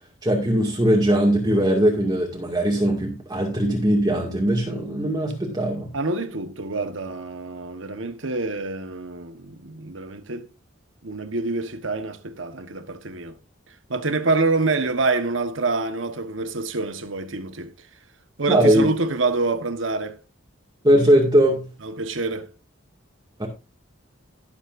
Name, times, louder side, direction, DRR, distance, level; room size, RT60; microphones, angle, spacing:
voice 1, 0.2-5.9 18.5-18.9 20.8-21.7 23.4-23.5, right 1 dB, 20° right, 2.1 m, -20 dB
voice 2, 5.9-10.5 11.0-13.4 13.9-17.7 18.4-20.2 21.8-22.5, right 3 dB, 80° right, 1.3 m, -26 dB
16.5 x 7.3 x 2.6 m
head